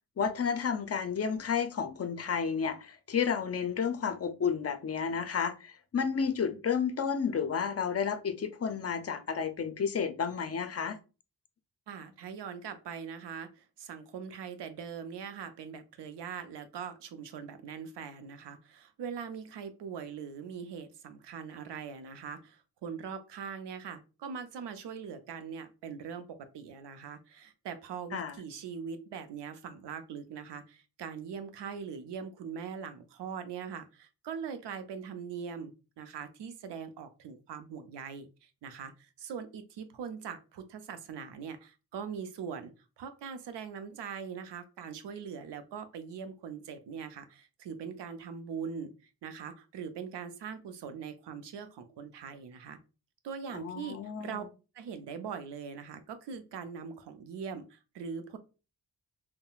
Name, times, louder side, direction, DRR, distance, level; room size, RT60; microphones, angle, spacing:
voice 1, 0.2-11.0 28.1-28.4 53.5-54.5, left 6 dB, 35° left, 0.5 m, -31 dB
voice 2, 11.9-42.7 43.0-48.9 49.2-52.8 53.2-54.4 54.7-58.4, right 6 dB, 75° right, 0.6 m, -42 dB
3.8 x 2.1 x 2.3 m
cardioid pair, 60°, 42 cm